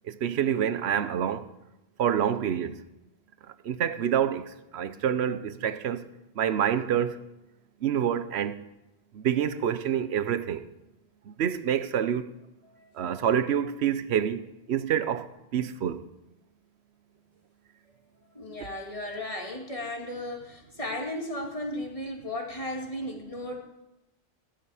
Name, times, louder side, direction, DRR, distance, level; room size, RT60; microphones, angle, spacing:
voice 1, 0.0-1.5 2.0-2.8 3.6-6.1 6.4-7.2 7.8-8.6 9.1-10.7 11.3-12.3 12.9-16.0, right 9 dB, 80° right, 1.0 m, -27 dB
voice 2, 18.3-23.6, left 1 dB, 30° left, 2.1 m, -35 dB
15.5 x 11.5 x 4.9 m
omnidirectional pair, 1.1 m